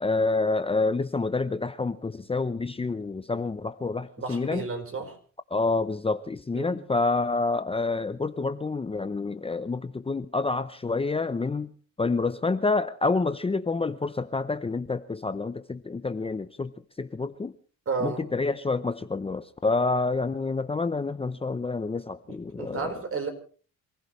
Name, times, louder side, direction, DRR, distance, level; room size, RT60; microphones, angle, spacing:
voice 1, 0.0-4.6 5.5-11.7 12.0-17.5 18.0-22.9, left 3 dB, 20° left, 0.7 m, -28 dB
voice 2, 4.2-5.2 6.5-6.8 17.9-18.2 22.3-23.3, right 4 dB, 45° right, 4.7 m, -32 dB
27.5 x 15.5 x 3.3 m
cardioid pair, 90°, 30 cm